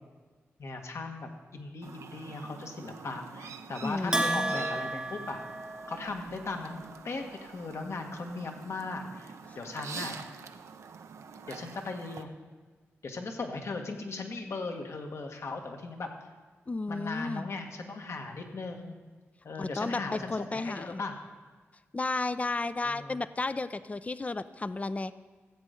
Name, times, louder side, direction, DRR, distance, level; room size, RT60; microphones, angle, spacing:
voice 1, 0.6-5.4 5.9-10.2 11.5-12.3 13.0-16.1 16.9-18.9 19.4-21.2 22.8-23.2, left 3 dB, 65° left, 3 dB, 1.5 m, -38 dB
Chirp tweet, 1.8-12.2, right 5 dB, 80° right, 0.7 m, -46 dB
voice 2, 3.8-4.5 16.7-17.5 19.6-21.0 21.9-25.1, left 3 dB, 30° left, 14 dB, 0.5 m, -33 dB
Bell, 4.1-6.3, right 1 dB, 15° right, 0.9 m, -32 dB
14.5 x 8.1 x 5.1 m, 1.4 s
cardioid pair, 50°, 5 cm